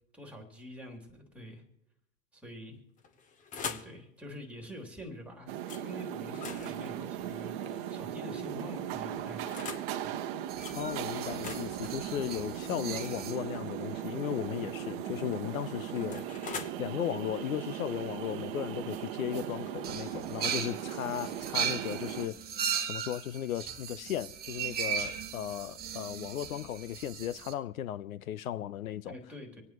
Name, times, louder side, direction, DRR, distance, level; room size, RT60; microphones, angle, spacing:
voice 1, 0.1-1.6 2.3-2.8 3.6-5.6 5.8-9.6 10.0-10.2 29.0-29.6, equal, 5° right, 2.7 m, -46 dB
sound 1, 3.0-4.0 5.7-5.8 6.2-8.1 8.9-9.9 10.6-10.8 11.2-13.9 15.0-16.7, left 6 dB, 20° left, 0.9 m, -44 dB
sound 2, 5.5-22.3, right 10 dB, 45° right, 0.9 m, -38 dB
sound 3, 10.5-13.4 14.7-14.8 15.0-15.3 16.1-16.2 19.8-27.5, right 8 dB, 25° right, 1.3 m, -37 dB
voice 2, 10.7-16.2 16.8-22.4 22.9-29.1, left 11 dB, 85° left, 0.6 m, -36 dB
26.5 x 9.2 x 3.0 m
hypercardioid pair, 120°, 41 cm